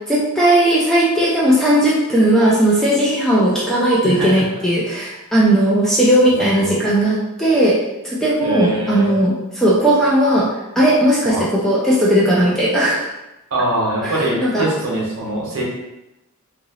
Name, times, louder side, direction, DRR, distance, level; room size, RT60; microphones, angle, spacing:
voice 1, 0.0-7.8 8.0-13.1 14.0-14.7, right 1 dB, ahead, -6 dB, 0.4 m, -16 dB
voice 2, 6.3-6.8 8.4-9.1 11.2-11.4 13.5-15.6, right 1 dB, 65° right, -5 dB, 1.1 m, -22 dB
2.9 x 2.6 x 2.8 m, 0.94 s
head